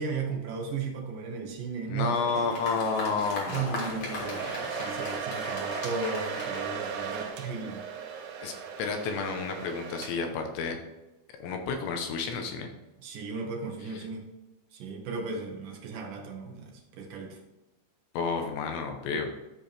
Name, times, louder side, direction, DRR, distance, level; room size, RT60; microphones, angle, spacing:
voice 1, 0.0-2.7 3.5-7.8 13.0-14.3 14.7-17.4, right 4 dB, 65° right, 1 dB, 2.4 m, -35 dB
voice 2, 1.9-4.5 8.4-10.8 11.4-12.7 18.1-19.3, left 5 dB, 80° left, 4 dB, 3.2 m, -31 dB
Applause, 2.0-7.6, left 1 dB, 60° left, 1.3 m, -39 dB
Domestic sounds home sounds, 3.8-10.5, right 6 dB, 90° right, 3.3 m, -37 dB
13.0 x 4.5 x 3.4 m, 1.0 s
omnidirectional pair, 5.2 m